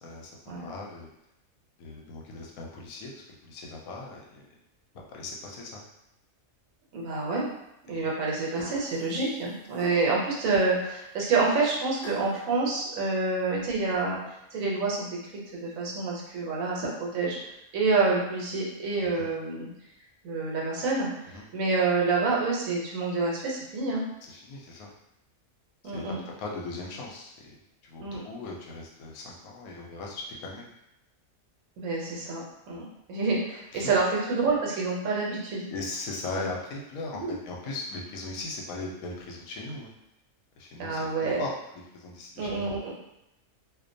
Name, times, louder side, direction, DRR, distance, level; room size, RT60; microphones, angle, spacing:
voice 1, 0.0-1.1 1.8-4.4 5.1-5.8 7.9-8.0 19.0-19.3 21.3-21.5 24.2-24.9 25.8-27.6 27.8-30.7 32.7-32.8 33.7-33.9 35.7-39.9 40.6-41.1 41.4-41.5 41.9-42.9, left 3 dB, 85° left, -2 dB, 1.1 m, -39 dB
voice 2, 6.9-7.5 7.8-14.2 14.5-17.4 17.7-19.7 20.2-24.0 25.8-26.2 28.0-28.2 31.8-32.8 33.1-35.7 36.3-36.5 37.1-37.3 40.8-41.4 42.4-42.9, right 3 dB, 75° right, -3 dB, 1.1 m, -28 dB
sound 1, 8.6-9.0 9.7-10.3 12.0-12.4, equal, 50° left, 1.0 m, -40 dB
2.4 x 2.2 x 2.6 m, 0.86 s
omnidirectional pair, 1.4 m